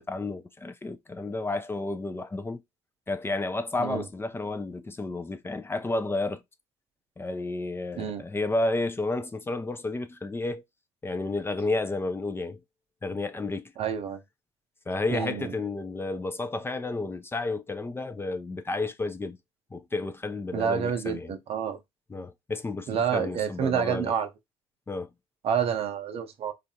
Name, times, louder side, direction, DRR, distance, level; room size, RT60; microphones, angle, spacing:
voice 1, 0.0-2.6 3.1-6.4 7.2-10.6 11.0-12.6 13.0-13.7 14.9-19.4 19.7-21.3 22.1-24.1 24.9-25.1, left 2 dB, 20° left, 0.4 m, -31 dB
voice 2, 13.8-14.2 15.1-15.5 20.5-21.8 22.9-24.3 25.4-26.5, right 8 dB, 55° right, 0.6 m, -28 dB
3.2 x 2.5 x 2.7 m
hypercardioid pair, 60°, 12 cm